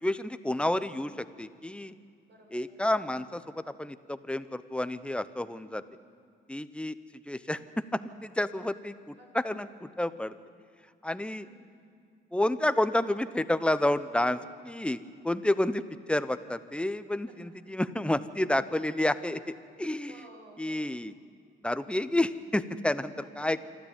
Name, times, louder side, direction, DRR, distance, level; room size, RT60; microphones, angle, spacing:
voice 1, 0.0-1.9 2.5-5.8 6.5-6.9 7.3-7.6 7.9-10.3 11.0-11.5 12.3-14.4 14.6-15.0 15.2-15.8 16.1-20.3 20.6-21.1 21.6-23.6, left 1 dB, 5° left, 12 dB, 0.9 m, -30 dB
voice 2, 2.3-2.6 5.5-6.1 7.4-7.8 9.1-9.5 11.4-12.0 20.0-20.8 23.4-23.5, right 2 dB, 60° right, 0 dB, 7.4 m, -56 dB
26.5 x 12.5 x 9.0 m, 2.2 s
cardioid pair, 90°, 20 cm